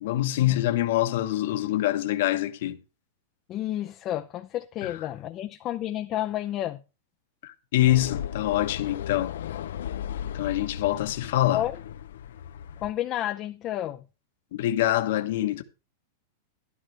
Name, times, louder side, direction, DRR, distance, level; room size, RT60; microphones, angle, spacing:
voice 1, 0.0-2.8 4.8-5.1 7.4-9.3 10.3-11.7 14.5-15.6, left 14 dB, 65° left, 1.2 m, -25 dB
voice 2, 3.5-6.8 11.5-11.7 12.8-14.0, left 13 dB, 30° left, 0.6 m, -31 dB
sound 1, 7.8-12.9, left 9 dB, 85° left, 0.6 m, -36 dB
12.5 x 12.0 x 3.4 m
supercardioid pair, 155°, 0 cm